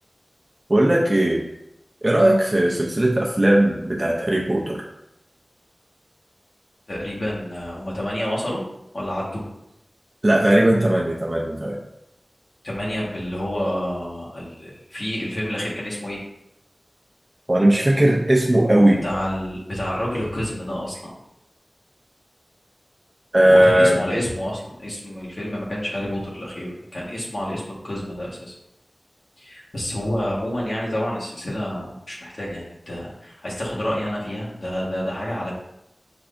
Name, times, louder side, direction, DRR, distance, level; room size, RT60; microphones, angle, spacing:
voice 1, 0.7-1.5 2.0-4.9 10.2-11.8 17.5-19.0 23.3-24.1, right 1 dB, 30° right, -3 dB, 0.6 m, -18 dB
voice 2, 6.9-8.6 8.9-9.4 12.6-16.2 19.0-21.1 23.4-28.5 29.4-35.5, equal, 70° left, -6 dB, 1.5 m, -29 dB
5.9 x 3.3 x 2.6 m, 0.84 s
wide cardioid pair, 65°, 0 cm